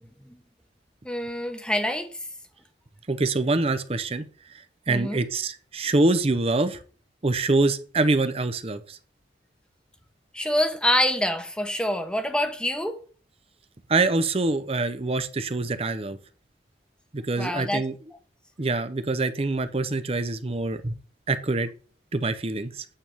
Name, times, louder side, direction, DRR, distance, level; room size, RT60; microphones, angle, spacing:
voice 1, 1.0-2.1 4.9-5.2 10.3-13.0 17.4-17.8, left 1 dB, 5° left, 1.0 m, -26 dB
voice 2, 3.1-4.3 4.9-6.8 7.2-9.0 13.9-16.2 17.1-17.9 18.6-21.0 21.3-21.7 22.1-22.8, right 2 dB, 35° right, 0.7 m, -25 dB
8.9 x 3.6 x 6.9 m
head